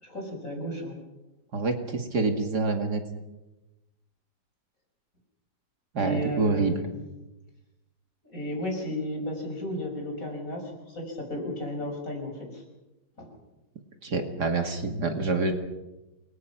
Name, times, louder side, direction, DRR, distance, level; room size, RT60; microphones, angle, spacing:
voice 1, 0.0-1.0 6.0-6.9 8.3-12.6 13.2-13.4, left 1 dB, 45° left, 1 dB, 6.8 m, -34 dB
voice 2, 1.5-3.0 5.9-6.7 14.0-15.5, right 3 dB, 65° right, 5 dB, 2.9 m, -26 dB
28.5 x 23.0 x 6.0 m, 1.0 s
omnidirectional pair, 1.9 m